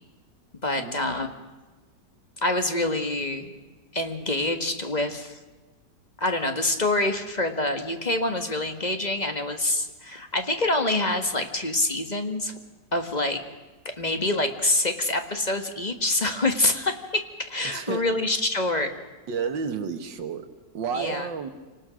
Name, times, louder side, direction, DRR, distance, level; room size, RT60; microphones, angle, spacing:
voice 1, 0.6-1.3 2.4-3.5 3.9-5.4 6.2-12.6 12.9-13.4 14.0-18.9 20.9-21.3, left 2 dB, 25° left, 6 dB, 1.6 m, -26 dB
voice 2, 17.6-18.0 19.3-20.5 20.7-21.5, right 6 dB, 90° right, 8 dB, 2.2 m, -31 dB
27.5 x 18.5 x 6.4 m, 1.3 s
omnidirectional pair, 1.9 m